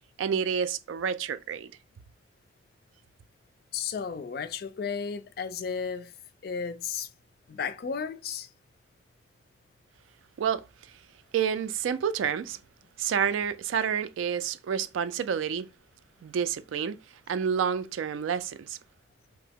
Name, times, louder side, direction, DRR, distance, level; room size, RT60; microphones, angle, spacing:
voice 1, 0.2-1.7 10.4-10.6 11.3-12.6 13.0-15.7 16.2-17.0 17.3-18.8, right 7 dB, 85° right, 0.3 m, -29 dB
voice 2, 3.7-6.1 6.4-7.1 7.5-8.5, left 6 dB, 50° left, 0.3 m, -33 dB
2.8 x 2.0 x 3.5 m
head